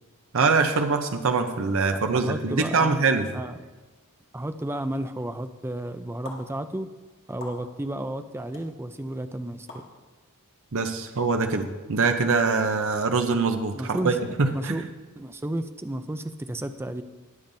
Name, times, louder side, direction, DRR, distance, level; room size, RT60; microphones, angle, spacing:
voice 1, 0.3-3.2 10.7-14.8, right 4 dB, 65° right, 6 dB, 0.7 m, -24 dB
voice 2, 1.9-3.6 4.3-6.9 7.3-9.7 13.7-14.9 15.2-17.0, right 1 dB, 10° right, 9 dB, 0.4 m, -32 dB
sound 1, 6.2-6.4 7.4-7.6 8.5-8.6 9.7-9.8, left 2 dB, 60° left, 1.9 m, -40 dB
20.5 x 7.1 x 2.7 m, 1.2 s
head